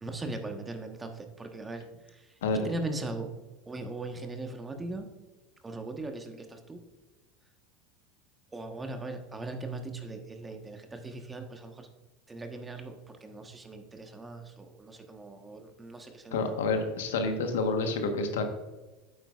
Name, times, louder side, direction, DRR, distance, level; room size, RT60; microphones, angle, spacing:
voice 1, 0.0-3.3 3.7-5.1 5.6-6.8 8.5-11.9 12.3-16.4, right 2 dB, 15° right, 5 dB, 1.2 m, -39 dB
voice 2, 16.3-18.4, left 3 dB, 80° left, 5 dB, 1.2 m, -28 dB
9.0 x 7.9 x 2.4 m, 1.2 s
hypercardioid pair, 95°, 0 cm